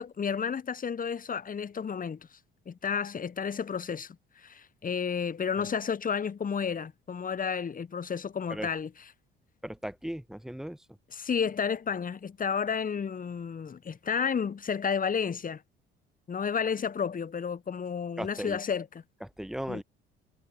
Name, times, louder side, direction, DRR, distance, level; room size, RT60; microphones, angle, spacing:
voice 1, 0.0-2.2 2.7-4.2 4.4-8.9 11.1-15.6 16.3-19.0 19.7-19.8, left 6 dB, 25° left, 1.2 m, -31 dB
voice 2, 9.6-10.8 18.2-18.6 19.2-19.8, equal, ahead, 1.3 m, -37 dB
figure-of-eight pair, 55°, 30 cm